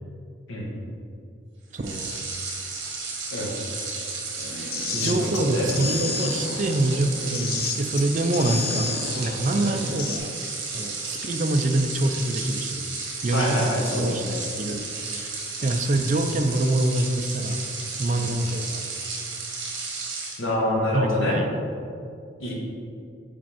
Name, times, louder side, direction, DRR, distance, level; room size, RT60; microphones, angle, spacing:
voice 1, 1.7-2.3 5.0-8.9 9.2-10.3 10.7-12.9 13.2-17.7 18.0-18.9 20.9-21.5, right 2 dB, 40° right, 7 dB, 0.4 m, -25 dB
sound 1, 1.8-20.4, right 4 dB, 60° right, 1.4 m, -33 dB
sound 2, 4.4-10.2, left 4 dB, 50° left, 0.5 m, -32 dB
voice 2, 4.9-5.7 9.6-9.8 13.3-14.2 18.1-18.3 20.4-21.4 22.4-22.5, left 1 dB, 80° left, -3 dB, 1.4 m, -26 dB
5.1 x 4.4 x 5.6 m, 2.4 s
head